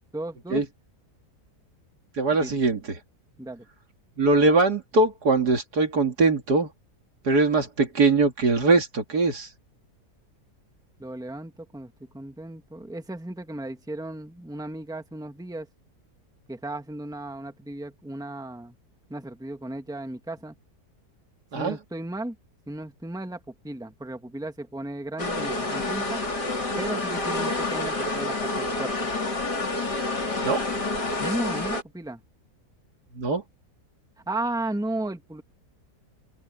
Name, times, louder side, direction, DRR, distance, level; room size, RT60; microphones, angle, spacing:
voice 1, 0.1-0.6 2.4-2.5 3.4-3.6 11.0-15.7 16.5-18.8 19.1-20.5 21.5-22.3 22.7-26.2 26.8-28.9 31.2-32.2 34.3-35.4, right 1 dB, ahead, 1.8 m, -35 dB
voice 2, 2.2-2.8 4.2-6.7 7.2-9.5 21.5-21.8 30.4-30.6 33.1-33.4, right 3 dB, 70° right, 2.9 m, -21 dB
sound 1, 25.2-31.8, left 2 dB, 80° left, 4.4 m, -28 dB
open air
omnidirectional pair, 1.8 m